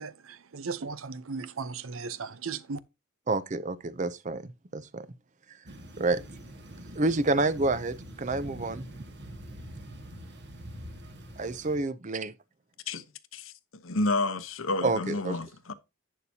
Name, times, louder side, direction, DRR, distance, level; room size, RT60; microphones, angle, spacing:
voice 1, 0.0-2.8, right 4 dB, 80° right, 0.7 m, -36 dB
voice 2, 3.3-5.1 6.0-6.2 7.0-8.8 11.4-12.3 14.8-15.4, right 2 dB, 35° right, 0.6 m, -28 dB
sound 1, 5.7-11.8, equal, 55° right, 1.7 m, -44 dB
voice 3, 13.8-15.7, left 2 dB, 75° left, 0.9 m, -30 dB
11.0 x 8.4 x 2.8 m
head